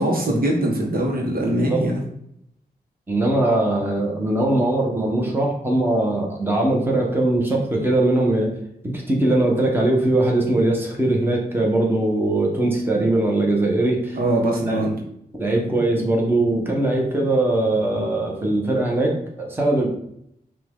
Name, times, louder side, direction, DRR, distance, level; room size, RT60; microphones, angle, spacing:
voice 1, 0.0-2.0 14.1-15.0, right 1 dB, 65° right, -1 dB, 1.1 m, -22 dB
voice 2, 1.5-1.8 3.1-8.5 8.8-14.2 14.7-14.8 15.4-19.9, right 2 dB, 15° right, -1 dB, 1.2 m, -21 dB
5.6 x 2.5 x 3.6 m, 0.73 s
cardioid pair, 75°, 16 cm